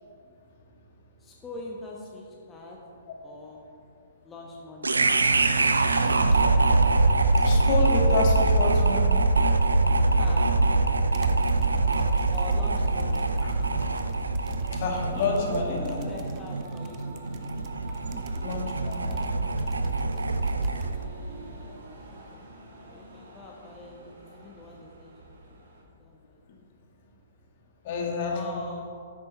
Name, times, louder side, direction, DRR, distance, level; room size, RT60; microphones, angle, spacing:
voice 1, 1.2-2.8 3.2-3.6 4.2-4.9 10.2-10.5 12.3-13.3 15.5-17.5 18.1-18.2 22.1-22.5 22.9-25.5 26.0-26.4 28.3-28.9, left 2 dB, 15° left, -2 dB, 1.2 m, -43 dB
sound 1, 4.8-21.0, right 3 dB, 85° right, 0.6 m, -24 dB
voice 2, 5.9-6.4 7.4-9.1 13.4-13.5 14.8-16.0 18.4-19.2 27.8-28.7, left 4 dB, 50° left, 0 dB, 2.0 m, -29 dB
sound 2, 9.7-21.0, right 7 dB, 35° right, 0.8 m, -46 dB
sound 3, 11.9-25.8, right 1 dB, 65° right, 1.9 m, -48 dB
10.5 x 8.5 x 4.2 m, 2.3 s
figure-of-eight pair, 120°, 0 cm